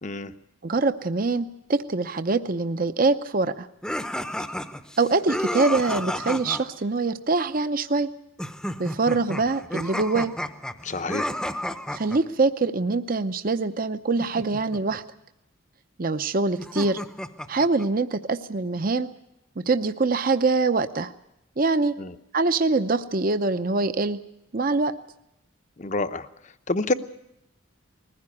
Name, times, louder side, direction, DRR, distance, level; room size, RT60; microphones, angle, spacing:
voice 1, 0.0-0.3 10.8-11.3 22.0-22.1 25.8-26.3 26.7-26.9, left 2 dB, 35° left, 11 dB, 0.8 m, -27 dB
voice 2, 0.6-3.7 5.0-8.1 8.8-10.3 11.9-15.0 16.0-17.0 17.5-19.1 19.6-21.1 21.6-21.9 22.3-24.2 24.5-25.0, right 3 dB, 45° right, 10 dB, 0.7 m, -24 dB
sound 1, 3.8-6.6 8.4-12.2 14.2-15.0 16.6-17.8, equal, 5° left, 0.8 m, -32 dB
20.5 x 15.5 x 9.8 m, 0.84 s
head